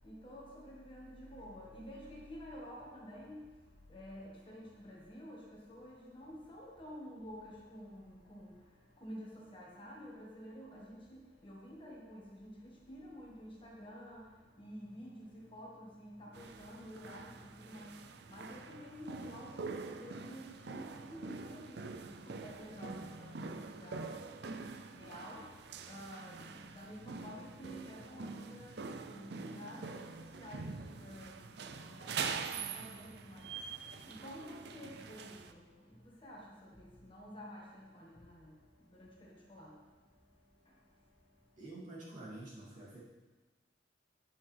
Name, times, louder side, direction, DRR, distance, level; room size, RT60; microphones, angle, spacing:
voice 1, 0.0-3.5 3.9-8.6 9.0-14.3 14.6-18.0 18.3-24.1 24.9-25.5 25.9-33.5 34.1-38.6 38.8-39.8 40.7-40.8, equal, 30° left, -3 dB, 1.6 m, -50 dB
sound 1, 16.3-35.5, right 4 dB, 60° right, 0.5 m, -45 dB
voice 2, 41.6-43.0, right 2 dB, 45° right, -7 dB, 2.7 m, -48 dB
9.7 x 9.0 x 3.4 m, 1.3 s
head